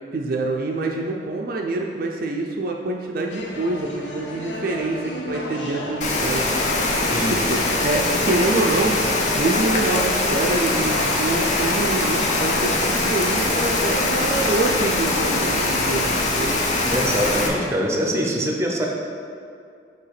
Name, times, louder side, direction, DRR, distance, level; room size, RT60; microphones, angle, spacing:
voice 1, 0.1-6.5 6.8-9.0 9.3-16.5, right 2 dB, 55° right, 1 dB, 0.4 m, -26 dB
sound 1, 3.3-15.7, left 1 dB, 75° left, 0.6 m, -33 dB
Rain, 6.0-17.5, left 2 dB, 45° left, 0.7 m, -22 dB
voice 2, 7.0-7.4 16.9-18.9, equal, 15° right, 0 dB, 0.6 m, -24 dB
5.5 x 3.4 x 5.7 m, 2.4 s
head